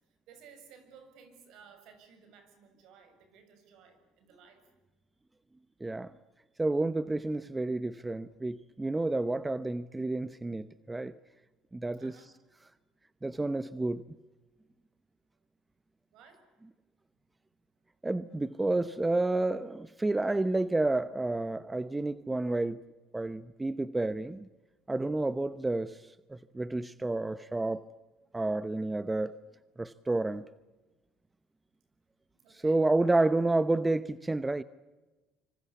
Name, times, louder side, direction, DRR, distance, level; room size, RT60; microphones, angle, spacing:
voice 1, 0.3-4.7 12.0-12.3 16.1-16.4 32.4-32.8 33.1-33.3, right 6 dB, 70° right, 7.2 m, -57 dB
voice 2, 6.6-11.1 11.7-12.1 13.2-14.0 18.0-22.8 23.1-24.5 24.9-26.0 26.3-27.8 28.3-29.4 29.8-30.4 32.5-34.6, right 2 dB, 15° right, 0.9 m, -30 dB
26.0 x 25.5 x 8.4 m
supercardioid pair, 100°, 0 cm